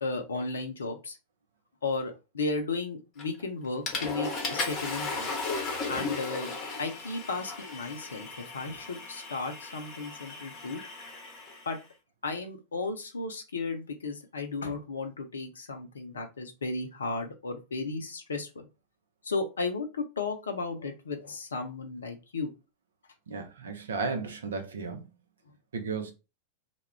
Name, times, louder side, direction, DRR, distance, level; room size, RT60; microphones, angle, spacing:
voice 1, 0.0-1.2 1.8-5.3 5.9-10.8 11.7-11.8 12.2-18.6 19.2-22.5, left 3 dB, 70° left, 0.5 m, -34 dB
Water / Toilet flush, 3.2-3.4 3.9-11.7, left 3 dB, 30° left, 0.8 m, -36 dB
voice 2, 23.3-25.1 25.7-26.1, right 4 dB, 65° right, 0.5 m, -34 dB
2.3 x 2.1 x 3.2 m
figure-of-eight pair, 90°, 0 cm